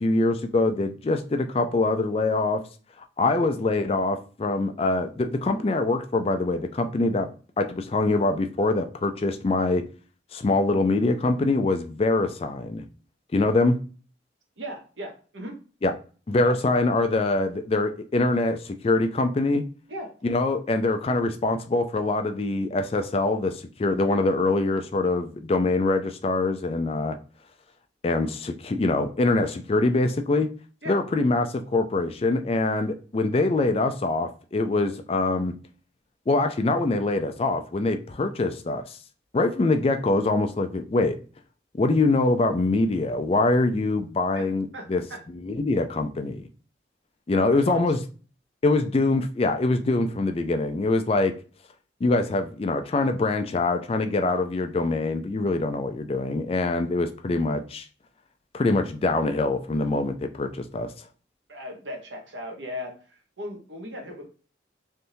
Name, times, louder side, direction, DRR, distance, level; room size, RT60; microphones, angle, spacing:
voice 1, 0.0-2.6 3.2-7.3 7.6-9.8 10.3-12.8 13.3-13.8 15.8-15.9 16.3-19.6 20.2-27.2 28.0-30.5 30.9-35.5 36.3-39.0 39.3-41.2 41.7-45.0 45.4-46.4 47.3-48.0 48.6-51.3 52.0-57.9 58.5-60.9, left 2 dB, 30° left, 0.3 m, -24 dB
voice 2, 14.6-15.5 16.4-16.5 19.9-20.1 30.8-31.0 44.3-44.5 44.7-45.2 47.3-47.9 61.5-64.2, equal, 85° right, 1.1 m, -37 dB
3.4 x 2.6 x 2.7 m
head